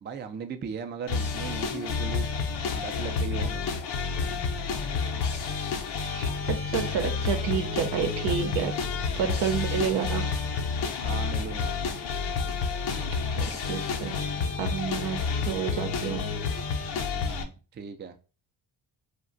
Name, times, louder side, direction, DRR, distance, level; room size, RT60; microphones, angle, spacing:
voice 1, 0.0-2.3 2.7-3.6 11.0-11.7 17.1-18.2, right 6 dB, 25° right, 6 dB, 0.4 m, -37 dB
sound 1, 1.1-17.4, left 5 dB, 60° left, 0.7 m, -30 dB
voice 2, 6.1-8.7 9.1-10.3 13.1-14.2 14.6-16.3, right 8 dB, 70° right, 7 dB, 0.7 m, -30 dB
2.3 x 2.2 x 3.8 m, 0.34 s
supercardioid pair, 60°, 46 cm